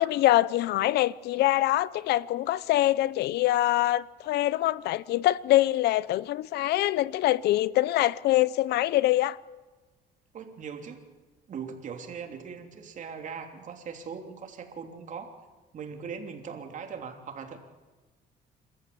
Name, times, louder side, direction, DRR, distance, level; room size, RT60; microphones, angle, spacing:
voice 1, 0.0-9.4, left 15 dB, 75° left, 0.7 m, -24 dB
voice 2, 10.3-11.0 11.5-15.3 15.7-17.6, right 6 dB, 50° right, 3.2 m, -40 dB
27.0 x 14.0 x 8.7 m
cardioid pair, 110°, 17 cm